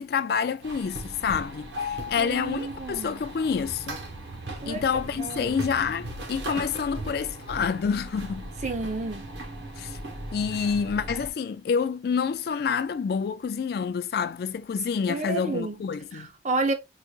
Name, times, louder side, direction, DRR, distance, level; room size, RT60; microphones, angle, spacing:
voice 1, 0.0-4.0 4.7-8.5 9.8-10.0 10.3-16.3, left 6 dB, 55° left, 0.3 m, -28 dB
sound 1, 0.6-11.3, equal, 80° right, 1.1 m, -37 dB
voice 2, 2.2-3.2 4.6-4.8 5.2-5.5 8.6-9.3 15.1-15.8 16.1-16.7, right 3 dB, 40° right, 0.6 m, -30 dB
4.8 x 2.5 x 2.3 m
head